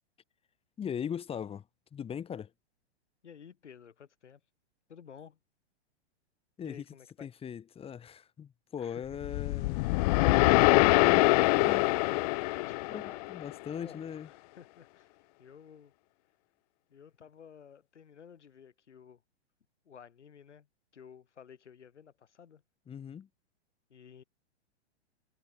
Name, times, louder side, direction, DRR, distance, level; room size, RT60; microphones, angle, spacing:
voice 1, 0.8-1.6 1.9-2.5 6.6-6.8 7.2-9.8 10.4-11.9 12.9-14.3 22.9-23.3, left 8 dB, 15° left, 5.0 m, -39 dB
voice 2, 3.2-4.4 4.9-5.4 6.6-7.3 8.8-9.5 12.6-13.3 13.8-15.9 16.9-19.2 19.9-20.7 20.9-22.6 23.9-24.2, left 7 dB, 90° left, 7.2 m, -53 dB
sound 1, 9.2-13.5, left 23 dB, 35° left, 0.7 m, -24 dB
hypercardioid pair, 140°, 34 cm